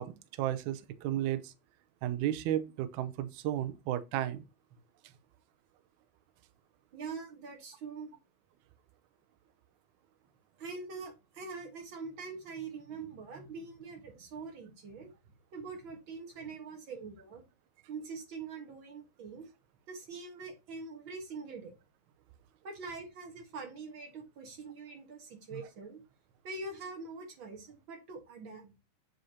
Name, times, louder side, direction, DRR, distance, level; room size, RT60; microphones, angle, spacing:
voice 1, 0.0-1.5 2.0-4.4 25.5-25.6, right 12 dB, 90° right, 1.6 m, -33 dB
voice 2, 6.9-8.2 10.6-15.1 15.5-17.4 17.9-19.4 19.9-21.7 22.6-26.0 26.4-28.7, right 4 dB, 55° right, 1.4 m, -44 dB
7.8 x 6.4 x 2.8 m
omnidirectional pair, 4.3 m